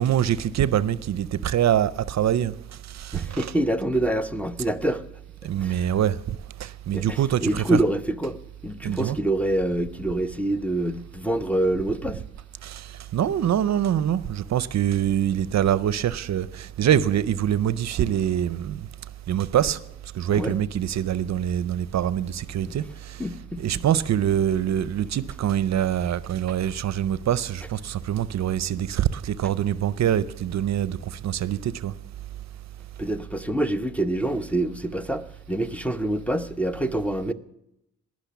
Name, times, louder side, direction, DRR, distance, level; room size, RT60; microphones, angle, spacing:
voice 1, 0.0-2.5 2.9-3.5 5.4-7.8 8.8-9.2 12.6-18.8 19.3-19.8 20.1-23.2 23.6-31.9, right 10 dB, 60° right, 0.6 m, -24 dB
voice 2, 3.1-5.0 5.6-5.9 6.9-8.4 8.6-12.2 20.3-20.6 22.6-22.8 23.2-23.8 33.0-37.3, right 1 dB, 5° left, 0.7 m, -26 dB
18.5 x 6.3 x 7.0 m
cardioid pair, 75°, 30 cm